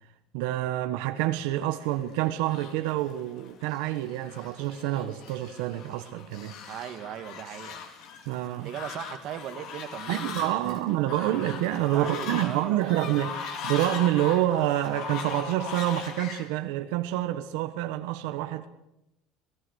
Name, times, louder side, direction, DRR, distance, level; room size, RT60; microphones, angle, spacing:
voice 1, 0.3-6.6 8.3-8.7 10.1-18.7, right 14 dB, 85° right, 1.4 m, -27 dB
Fowl, 1.6-16.5, left 6 dB, 55° left, 4.1 m, -40 dB
voice 2, 6.7-7.8 8.6-10.8 11.3-11.7 11.9-12.8, right 11 dB, 50° right, 1.8 m, -38 dB
27.0 x 18.5 x 6.5 m
cardioid pair, 155°, 0 cm